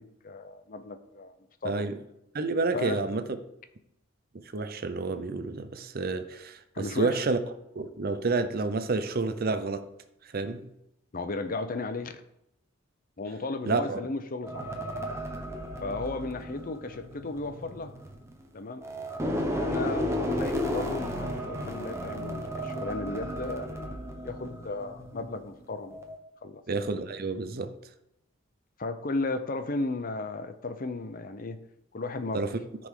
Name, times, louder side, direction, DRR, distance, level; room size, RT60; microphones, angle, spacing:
voice 1, 0.0-1.3 1.6-1.9 2.7-3.0 6.7-7.2 11.1-12.1 13.2-14.6 15.8-17.9 18.5-18.8 19.5-26.0 26.4-26.6 28.8-31.6 31.9-32.4, left 2 dB, 45° left, 0.6 m, -35 dB
voice 2, 1.6-2.0 2.3-3.2 4.3-7.4 7.8-9.9 10.3-10.7 13.7-14.0 26.7-27.7 32.3-32.6, right 3 dB, 45° right, 0.6 m, -29 dB
sound 1, 14.4-18.5 18.8-25.5 25.9-26.2, equal, 15° right, 0.9 m, -34 dB
13.0 x 5.1 x 3.7 m
head